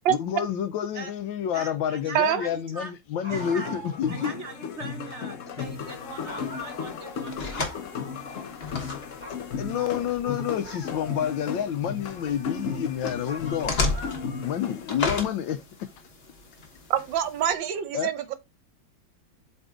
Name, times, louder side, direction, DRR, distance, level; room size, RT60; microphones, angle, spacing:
voice 1, 0.1-4.3 9.3-13.7 14.4-15.9 17.9-18.1, left 9 dB, 75° left, 1.4 m, -29 dB
voice 2, 1.5-2.9 3.3-3.7 4.1-7.6, right 3 dB, 45° right, 1.1 m, -41 dB
sound 1, 3.2-4.3 4.7-4.8 5.7-5.9 6.3-7.2 7.7-8.9 9.2-11.4 11.9-12.8 13.3-14.6, equal, 25° right, 3.1 m, -44 dB
sound 2, 3.3-15.0, left 6 dB, 60° left, 0.9 m, -36 dB
sound 3, 5.6-17.5, left 3 dB, 35° left, 1.3 m, -36 dB
voice 3, 16.9-18.3, right 10 dB, 75° right, 1.5 m, -25 dB
7.9 x 3.5 x 3.7 m
omnidirectional pair, 2.1 m